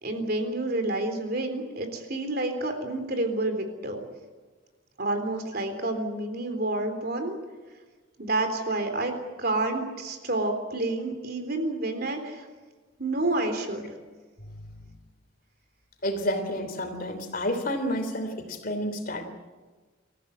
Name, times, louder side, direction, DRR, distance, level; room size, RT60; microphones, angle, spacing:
voice 1, 0.0-4.0 5.0-7.3 8.2-9.1 9.4-12.5 13.0-13.9, right 2 dB, 50° right, 6 dB, 3.7 m, -29 dB
voice 2, 16.0-19.3, left 1 dB, 45° left, 7 dB, 3.2 m, -30 dB
26.5 x 15.0 x 9.8 m, 1.4 s
head